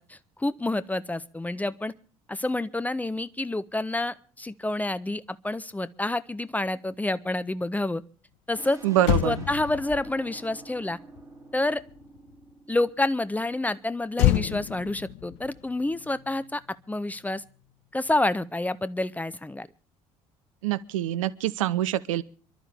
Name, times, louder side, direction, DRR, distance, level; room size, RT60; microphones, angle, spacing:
voice 1, 0.0-1.9 2.3-8.0 8.5-8.8 9.2-11.0 11.5-11.8 12.7-16.6 16.9-17.4 17.9-19.7, left 2 dB, 10° left, 15 dB, 0.6 m, -28 dB
sound 1, 8.5-13.9, right 3 dB, 15° right, 3.4 m, -48 dB
Motor vehicle (road), 8.6-8.7 9.0-12.5 14.1-16.7 17.0-17.3, left 14 dB, 60° left, 0.7 m, -29 dB
voice 2, 8.8-9.4 20.6-22.2, right 13 dB, 70° right, 15 dB, 0.7 m, -25 dB
26.5 x 12.0 x 3.5 m, 0.40 s
figure-of-eight pair, 60°, 18 cm